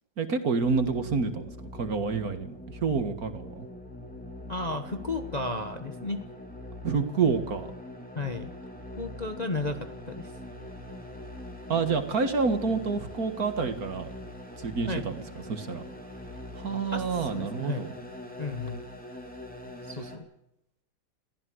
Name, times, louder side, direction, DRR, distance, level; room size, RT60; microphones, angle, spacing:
voice 1, 0.2-3.7 6.8-7.7 11.7-14.1 14.6-15.2 15.5-15.8 16.6-17.9, right 5 dB, 50° right, 9 dB, 2.0 m, -28 dB
sound 1, 0.6-20.2, left 1 dB, 5° left, 3.3 m, -43 dB
voice 2, 4.5-6.2 8.1-8.5 9.0-10.2 14.9-15.0 16.9-17.0 17.3-17.8 18.4-18.8 19.9-20.2, left 2 dB, 25° left, 6 dB, 1.0 m, -33 dB
22.5 x 15.0 x 7.9 m, 0.83 s
omnidirectional pair, 2.1 m